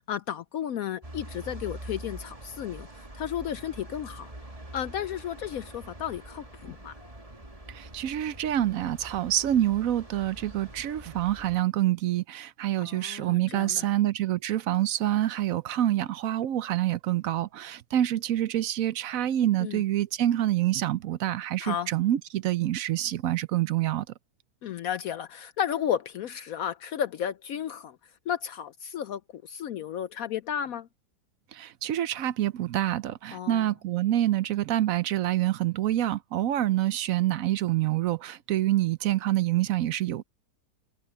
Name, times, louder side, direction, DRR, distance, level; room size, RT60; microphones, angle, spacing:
voice 1, 0.1-2.9 3.1-4.3 4.7-6.9 12.8-13.9 19.6-19.8 21.6-21.9 24.6-28.0 28.3-30.9 33.3-33.7, left 9 dB, 65° left, 0.9 m, -33 dB
sound 1, 1.0-11.6, right 1 dB, 20° right, 2.3 m, -44 dB
voice 2, 7.7-24.0 31.6-40.2, right 13 dB, 65° right, 0.9 m, -27 dB
omnidirectional pair, 1.8 m